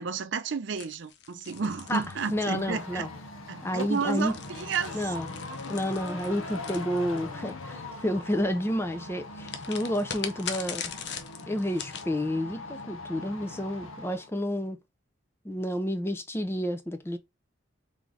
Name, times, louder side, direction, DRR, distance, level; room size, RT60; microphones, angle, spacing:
voice 1, 0.0-3.1 3.5-5.1, right 5 dB, 60° right, 0.5 m, -32 dB
sound 1, 0.8-2.8 3.7-7.5 9.4-12.1, left 7 dB, 55° left, 0.7 m, -40 dB
sound 2, 1.5-14.3, left 3 dB, 80° left, 0.8 m, -41 dB
voice 2, 2.3-3.1 3.6-4.4 4.9-5.3 5.7-10.8 11.5-14.8 15.4-17.2, equal, 10° left, 0.4 m, -30 dB
3.8 x 3.5 x 3.1 m
head